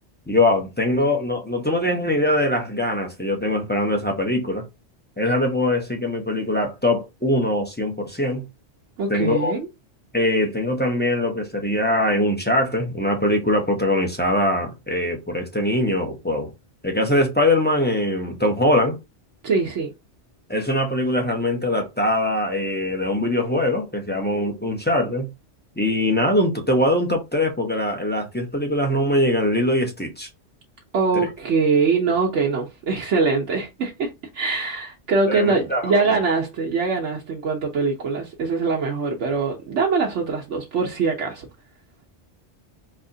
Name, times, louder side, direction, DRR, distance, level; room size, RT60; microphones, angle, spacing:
voice 1, 0.3-4.6 5.2-8.4 9.1-9.5 10.1-16.5 16.8-19.0 20.5-25.3 25.8-30.3 31.1-31.3 35.3-36.2, left 1 dB, 10° left, 0.6 m, -22 dB
voice 2, 9.0-9.7 19.4-19.9 30.9-41.5, right 4 dB, 80° right, 1.1 m, -23 dB
4.1 x 2.9 x 2.6 m
omnidirectional pair, 1.2 m